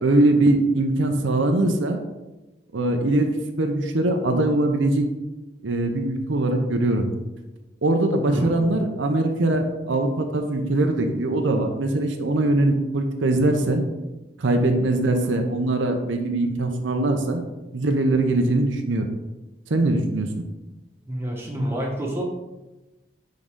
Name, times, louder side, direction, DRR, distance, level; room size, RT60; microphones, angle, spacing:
voice 1, 0.0-2.0 2.7-3.3 3.6-5.1 5.6-7.2 7.8-13.8 14.4-17.4 17.7-19.1 19.7-20.4, right 2 dB, 80° right, 5 dB, 0.7 m, -22 dB
voice 2, 8.3-8.6 15.1-15.3 21.0-22.2, equal, 15° right, -2 dB, 1.2 m, -29 dB
9.4 x 3.8 x 3.7 m, 1.1 s
head